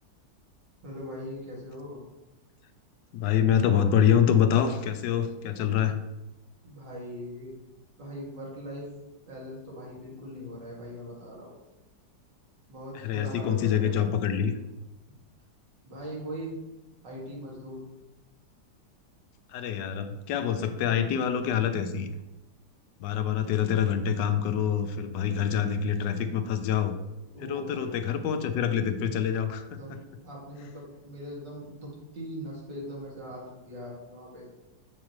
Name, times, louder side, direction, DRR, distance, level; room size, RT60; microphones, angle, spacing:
voice 1, 0.8-2.0 6.6-7.5 8.0-8.9 9.3-11.5 12.7-14.0 15.8-16.5 17.0-17.8 27.3-28.0 29.8-34.5, equal, 75° right, -4 dB, 2.7 m, -40 dB
voice 2, 3.1-6.0 13.0-14.5 19.5-22.1 23.0-26.9 27.4-29.8, left 8 dB, 85° left, 9 dB, 1.3 m, -26 dB
7.4 x 6.2 x 3.1 m, 0.99 s
omnidirectional pair, 1.9 m